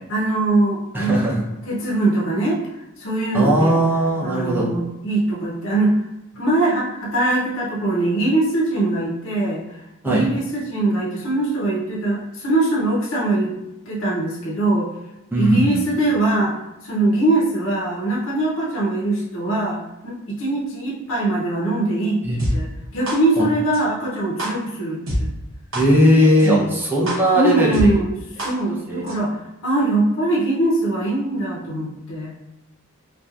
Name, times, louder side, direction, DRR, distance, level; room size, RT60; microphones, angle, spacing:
voice 1, 0.1-2.6 3.0-3.8 4.2-6.0 6.3-9.6 10.0-13.5 13.9-14.9 15.4-16.5 16.8-22.2 22.5-25.3 26.4-26.7 27.3-28.1 28.4-32.3, right 2 dB, 60° left, -5 dB, 0.6 m, -22 dB
voice 2, 0.9-1.4 3.3-4.7 10.0-10.2 15.3-15.8 22.2-22.4 23.4-23.5 25.7-28.0 28.9-29.1, equal, 10° right, -6 dB, 0.6 m, -18 dB
sound 1, 22.4-22.5 23.1-23.2 23.7-23.8 24.4-24.5 25.1-25.2 25.7-25.8 26.4-26.5 27.1-27.2 27.7-27.8 28.4-28.5 29.1-29.2, equal, 60° right, 1.0 m, -24 dB
2.8 x 2.2 x 2.4 m, 0.95 s
head